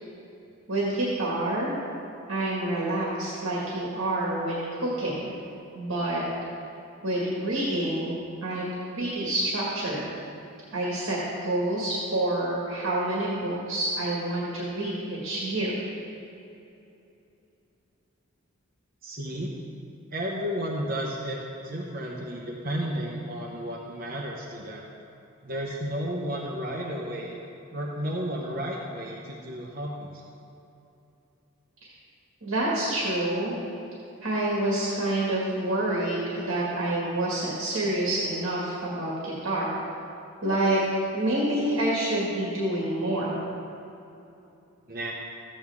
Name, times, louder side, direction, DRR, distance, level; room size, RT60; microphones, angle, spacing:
voice 1, 0.7-1.7 2.3-5.2 5.7-6.2 7.0-10.1 10.7-15.8 31.8-31.9 32.4-33.5 34.2-39.7 40.4-40.8 41.1-43.4, right 1 dB, 65° right, -6 dB, 1.9 m, -28 dB
voice 2, 19.0-19.5 20.1-21.4 21.6-24.9 25.4-27.4 27.7-30.2 44.9-45.1, equal, 45° right, -2 dB, 0.9 m, -32 dB
14.0 x 8.7 x 3.6 m, 2.8 s
head